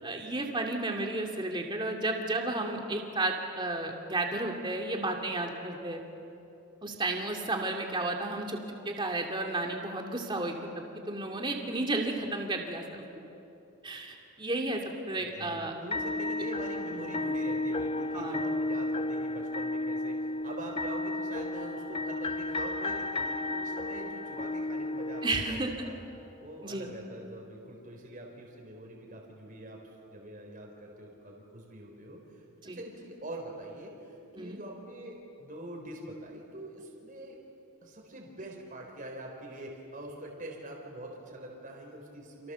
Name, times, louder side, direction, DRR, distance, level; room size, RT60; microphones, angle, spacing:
voice 1, 0.0-6.0 6.8-13.0 13.8-15.7 16.9-17.0 18.1-18.4 25.2-25.7 26.6-26.9 32.6-32.8 34.3-34.6, right 2 dB, 20° right, 1 dB, 2.6 m, -33 dB
voice 2, 15.2-26.0 26.4-29.8 30.1-37.4 37.8-42.5, right 1 dB, 35° right, 0 dB, 4.1 m, -44 dB
sound 1, 15.9-25.9, left 2 dB, 25° left, 0.5 m, -33 dB
29.5 x 28.5 x 7.0 m, 2.8 s
head